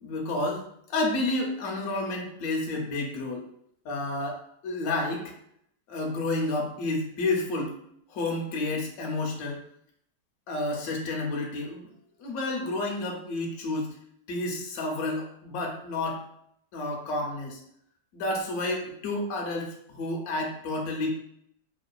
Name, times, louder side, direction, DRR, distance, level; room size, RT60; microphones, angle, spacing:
voice 1, 0.0-3.5 3.8-5.3 5.9-7.7 8.1-9.6 10.5-11.9 12.2-13.9 14.3-16.2 16.7-17.6 18.1-21.1, left 2 dB, 70° left, 0 dB, 0.9 m, -30 dB
3.0 x 2.1 x 2.2 m, 0.70 s
omnidirectional pair, 1.8 m